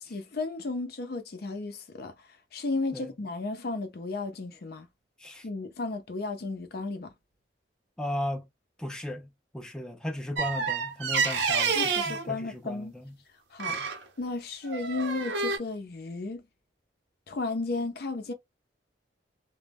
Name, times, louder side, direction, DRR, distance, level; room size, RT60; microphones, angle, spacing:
voice 1, 0.0-2.1 2.5-4.9 5.4-7.1 11.7-12.9 13.5-13.8 14.2-16.4 17.3-18.3, left 3 dB, 60° left, 0.5 m, -34 dB
voice 2, 8.0-8.5 8.8-13.2 13.7-13.9, left 1 dB, 5° left, 0.4 m, -36 dB
sound 1, 10.4-12.3 13.6-14.0 14.7-15.6, right 5 dB, 85° right, 0.7 m, -28 dB
2.1 x 2.0 x 3.3 m
head